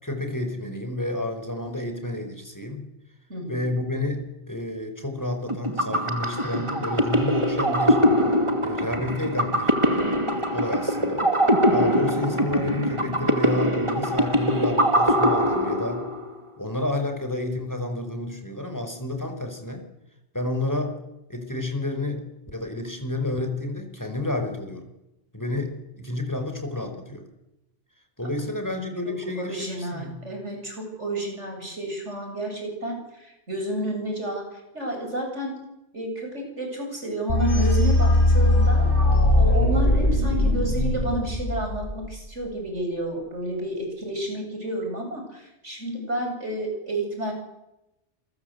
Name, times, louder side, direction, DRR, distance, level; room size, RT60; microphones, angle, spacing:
voice 1, 0.0-2.9 3.5-8.0 8.6-16.0 16.6-19.8 20.3-20.9 21.3-24.9 25.3-27.3 28.2-30.2, left 2 dB, 15° left, 5 dB, 5.2 m, -30 dB
voice 2, 3.3-3.6 29.0-35.6 35.9-38.9 39.3-47.3, right 1 dB, 80° right, 2 dB, 8.0 m, -31 dB
sound 1, 5.5-16.3, equal, 25° right, 2.7 m, -23 dB
sound 2, 37.3-42.2, left 1 dB, 45° left, 8.0 m, -20 dB
28.0 x 23.5 x 8.2 m, 0.93 s
omnidirectional pair, 1.2 m